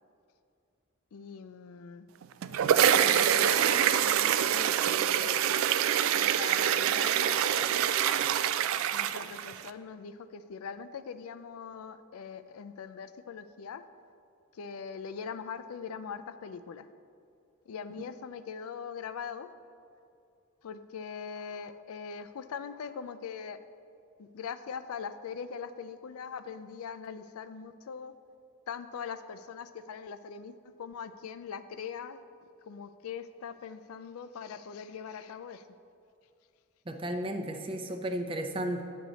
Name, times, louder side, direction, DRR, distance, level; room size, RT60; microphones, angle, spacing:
voice 1, 1.1-2.1 3.0-5.4 6.1-8.0 8.9-13.8 14.5-16.9 17.7-19.5 20.6-23.6 24.2-28.1 28.7-32.2 32.6-35.6, left 6 dB, 85° left, 12 dB, 0.4 m, -41 dB
sound 1, 2.2-9.7, right 10 dB, 70° right, 0.3 m, -26 dB
voice 2, 36.9-38.8, right 1 dB, 25° right, 5 dB, 0.6 m, -34 dB
8.8 x 6.5 x 4.0 m, 2.5 s
head